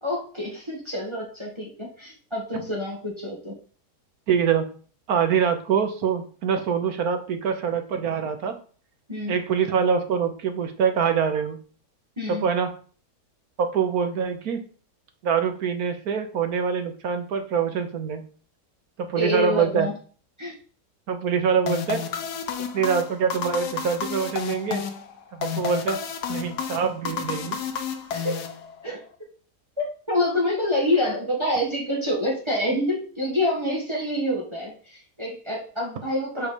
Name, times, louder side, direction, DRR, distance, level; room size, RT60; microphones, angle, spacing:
voice 1, 0.0-3.6 9.1-9.4 12.2-12.5 19.2-19.9 20.4-20.5 28.1-28.4 28.8-29.0 29.8-36.5, left 1 dB, 15° right, -3 dB, 1.8 m, -27 dB
voice 2, 4.3-4.7 5.1-8.6 9.3-11.6 12.3-12.7 13.6-14.6 15.2-18.3 19.0-19.9 21.1-22.0 22.7-24.8 25.3-26.0 26.3-27.6, right 6 dB, 65° right, 7 dB, 1.4 m, -24 dB
sound 1, 21.7-29.0, left 7 dB, 80° left, 1.3 m, -31 dB
5.3 x 4.8 x 5.1 m, 0.41 s
omnidirectional pair, 1.7 m